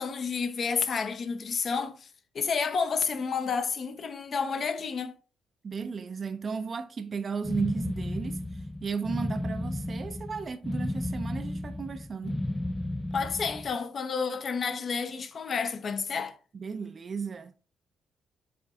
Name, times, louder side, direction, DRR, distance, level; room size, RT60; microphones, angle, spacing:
voice 1, 0.0-2.1 2.3-5.2 13.1-16.4, left 5 dB, 55° left, 0.6 m, -30 dB
voice 2, 5.6-12.4 16.5-17.6, right 5 dB, 50° right, 0.4 m, -35 dB
sound 1, 7.4-13.7, left 1 dB, 15° left, 0.4 m, -33 dB
7.7 x 2.7 x 2.4 m
hypercardioid pair, 45°, 0 cm